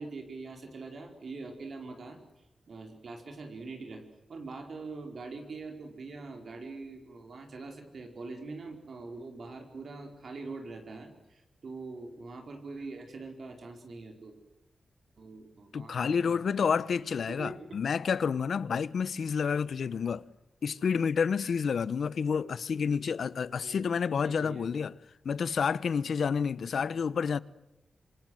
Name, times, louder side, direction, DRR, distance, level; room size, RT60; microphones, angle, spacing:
voice 1, 0.0-2.2 2.7-4.0 4.3-14.3 15.2-16.7 17.3-17.7 23.6-23.8 24.2-24.7, right 3 dB, 55° right, 4.7 m, -43 dB
voice 2, 15.7-20.2 20.6-24.9 25.2-27.4, left 6 dB, 70° left, 0.9 m, -29 dB
27.0 x 26.5 x 7.9 m
wide cardioid pair, 150°, 0 cm